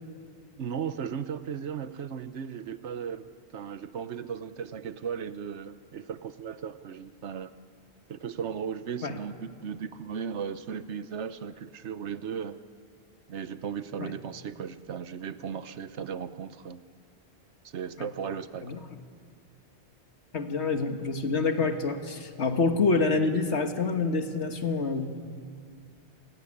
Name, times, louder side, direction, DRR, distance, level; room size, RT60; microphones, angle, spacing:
voice 1, 0.6-7.5 8.1-12.6 13.3-16.8 17.6-18.8, right 7 dB, 90° right, 13 dB, 1.2 m, -36 dB
voice 2, 20.3-25.1, left 4 dB, 80° left, 6 dB, 1.9 m, -27 dB
28.5 x 17.0 x 9.9 m, 2.2 s
omnidirectional pair, 1.1 m